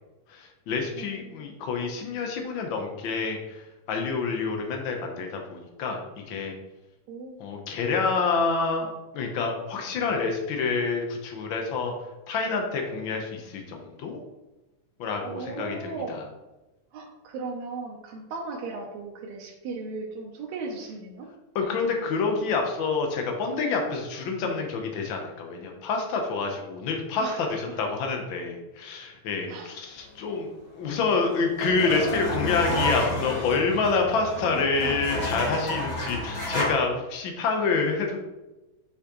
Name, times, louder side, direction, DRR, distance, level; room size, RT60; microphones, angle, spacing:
voice 1, 0.3-6.5 7.4-11.9 12.3-14.2 15.0-16.2 21.5-38.2, left 4 dB, 75° left, 3 dB, 1.1 m, -28 dB
voice 2, 1.0-1.4 7.1-7.4 15.2-16.2 16.9-21.3 27.2-27.8 29.5-29.8 32.7-32.9 34.4-35.0, right 3 dB, 75° right, -2 dB, 1.9 m, -37 dB
sound 1, 30.8-36.7, left 1 dB, 50° left, 0.4 m, -30 dB
6.2 x 6.0 x 3.0 m, 1.0 s
omnidirectional pair, 3.4 m